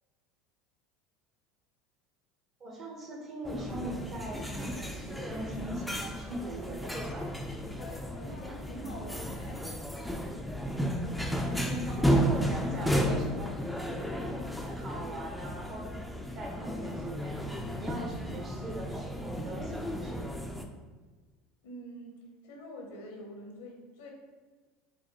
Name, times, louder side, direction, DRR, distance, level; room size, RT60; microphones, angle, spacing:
voice 1, 2.6-7.3 11.5-16.0 16.3-17.4 17.7-20.3, right 1 dB, 40° right, -1 dB, 1.0 m, -40 dB
sound 1, 3.4-20.6, equal, ahead, 0.4 m, -33 dB
voice 2, 7.7-9.6 11.4-11.8 21.6-22.2 22.4-24.1, equal, 80° left, 1 dB, 0.8 m, -45 dB
4.8 x 2.2 x 2.8 m, 1.3 s
hypercardioid pair, 90°, 0 cm